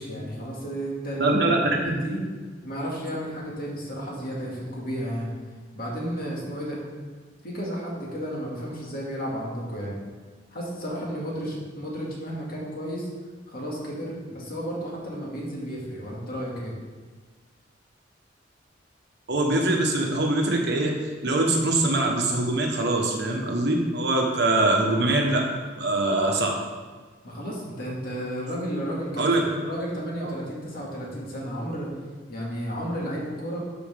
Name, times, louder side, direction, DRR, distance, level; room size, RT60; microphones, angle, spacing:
voice 1, 0.0-1.4 1.8-2.2 2.6-5.3 5.7-6.8 7.4-10.0 10.5-13.1 13.5-16.7 27.2-29.3 29.6-31.9 32.3-33.6, equal, 50° left, -4 dB, 2.2 m, -32 dB
voice 2, 1.2-1.6 1.8-1.9 19.3-20.9 21.2-25.4 25.8-26.5 29.2-29.4 30.2-30.3, right 2 dB, 65° right, 1 dB, 1.2 m, -23 dB
12.5 x 5.0 x 3.6 m, 1.4 s
head